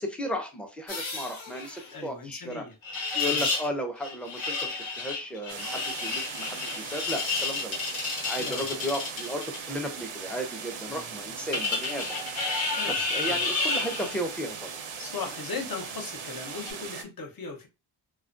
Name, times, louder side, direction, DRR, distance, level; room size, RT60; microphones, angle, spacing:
voice 1, 0.0-2.6 3.1-7.8 8.3-12.1 12.8-14.8 15.2-15.3, equal, 5° left, 0.4 m, -34 dB
sound 1, 0.9-1.9 2.8-3.7 4.0-9.6 11.5-14.2 16.5-16.7, left 3 dB, 75° left, 0.9 m, -31 dB
voice 2, 1.9-2.7 3.2-3.5 8.4-8.7 10.9-11.4 12.7-13.0 13.2-13.4 15.0-17.7, left 4 dB, 50° left, 0.7 m, -38 dB
sound 2, 5.5-17.0, right 6 dB, 85° right, 0.6 m, -39 dB
2.3 x 2.1 x 2.4 m
wide cardioid pair, 115°, 47 cm